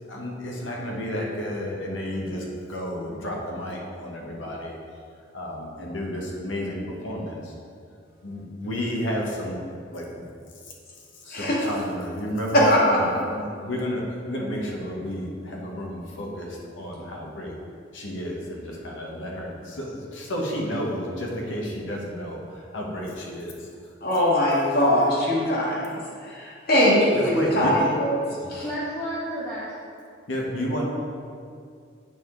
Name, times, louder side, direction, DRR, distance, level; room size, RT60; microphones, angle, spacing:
voice 1, 0.1-4.8 5.3-7.5 8.2-10.1 11.2-12.6 12.9-17.6 17.9-23.7 27.1-27.9 28.4-28.5 30.3-30.8, equal, 80° left, -2 dB, 1.3 m, -31 dB
voice 2, 11.3-11.8 12.5-13.2 24.0-26.0 26.2-28.2 28.5-28.6, left 1 dB, 55° left, -5 dB, 1.9 m, -21 dB
voice 3, 28.6-29.6, equal, 15° left, -10 dB, 1.1 m, -31 dB
8.3 x 4.9 x 3.9 m, 2.3 s
head